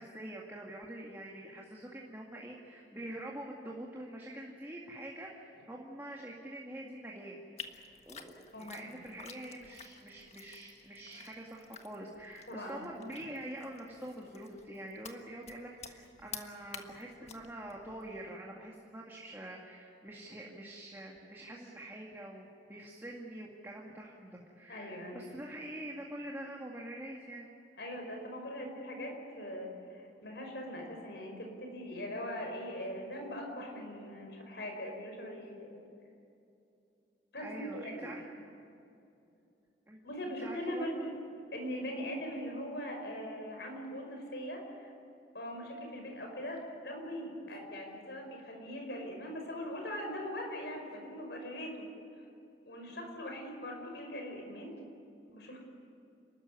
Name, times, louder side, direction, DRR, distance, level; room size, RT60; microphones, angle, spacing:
voice 1, 0.0-7.4 8.0-27.5 37.4-38.2 39.9-41.1 52.9-53.2, right 1 dB, 15° right, -3 dB, 2.0 m, -45 dB
sound 1, 7.6-18.4, left 6 dB, 35° left, 1.5 m, -51 dB
voice 2, 12.5-12.8 24.7-25.3 27.8-35.8 37.3-38.1 40.0-41.1 41.5-44.9 45.3-51.9 52.7-54.8 55.3-55.6, equal, 65° left, 2 dB, 5.5 m, -41 dB
29.5 x 13.5 x 9.6 m, 2.7 s
head